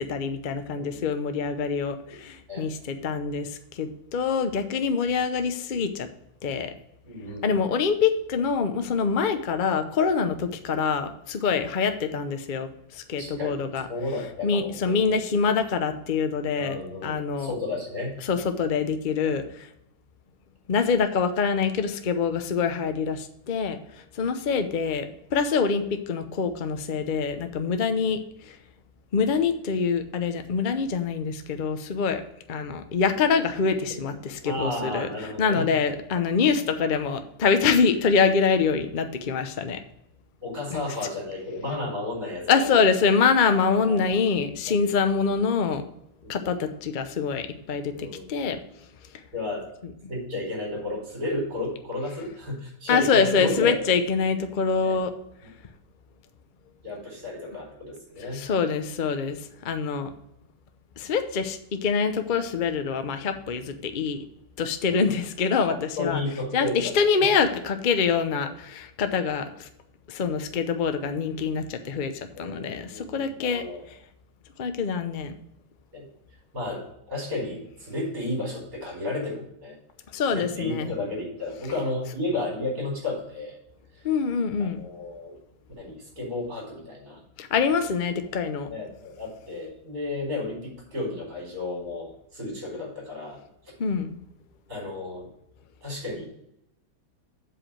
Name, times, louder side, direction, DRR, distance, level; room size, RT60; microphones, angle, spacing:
voice 1, 0.0-6.1 6.4-6.7 7.4-13.9 14.4-17.5 18.2-19.7 20.7-28.6 29.1-32.2 32.5-39.8 40.7-40.9 42.5-45.8 46.3-48.6 52.9-55.1 58.3-60.1 61.0-64.2 64.6-66.2 66.5-69.7 70.1-73.6 74.6-75.3 80.1-80.9 84.0-84.8 87.4-88.7 93.8-94.2, left 5 dB, 80° left, 8 dB, 0.4 m, -25 dB
voice 2, 7.0-7.5 13.2-13.6 13.9-15.2 16.6-18.2 19.2-19.3 34.4-35.7 40.4-42.7 43.2-44.0 46.2-46.5 47.9-48.3 49.3-49.7 50.1-53.8 54.8-55.0 56.8-58.4 64.9-65.1 65.7-67.3 72.4-73.8 75.9-76.1 76.5-79.8 80.3-83.6 84.6-85.3 85.8-87.2 88.7-93.4 94.7-95.3 95.8-96.3, left 2 dB, 50° right, -5 dB, 4.7 m, -33 dB
7.7 x 4.9 x 7.3 m, 0.80 s
omnidirectional pair, 2.1 m